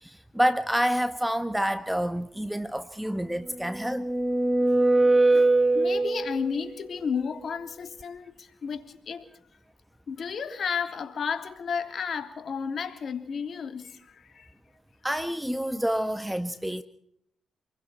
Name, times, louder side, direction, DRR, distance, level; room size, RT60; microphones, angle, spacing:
voice 1, 0.0-4.0 15.0-16.8, equal, 5° right, 1.4 m, -28 dB
sound 1, 3.5-6.6, right 2 dB, 20° right, 2.0 m, -22 dB
voice 2, 5.0-9.3 10.1-14.5, left 6 dB, 60° left, 3.1 m, -33 dB
28.0 x 22.0 x 4.4 m
supercardioid pair, 50°, 0 cm